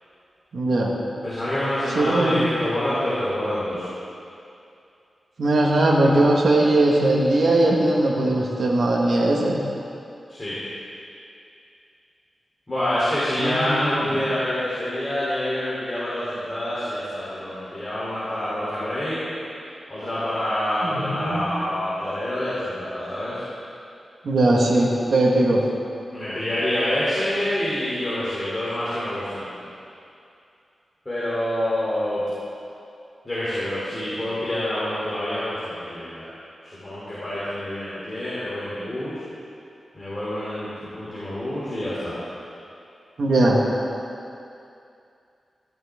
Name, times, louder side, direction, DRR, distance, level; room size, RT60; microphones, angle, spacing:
voice 1, 0.5-1.0 1.9-2.5 5.4-9.6 13.4-14.2 19.1-19.3 20.8-21.5 24.2-25.6 43.2-43.6, right 1 dB, 70° right, -3 dB, 1.5 m, -20 dB
voice 2, 1.2-3.8 10.3-10.6 12.7-19.2 19.9-23.4 26.1-29.5 31.0-32.2 33.2-36.2 36.8-39.2 39.9-42.1, left 1 dB, 20° left, -11 dB, 3.3 m, -27 dB
14.0 x 12.0 x 3.6 m, 2.6 s
wide cardioid pair, 155°, 0 cm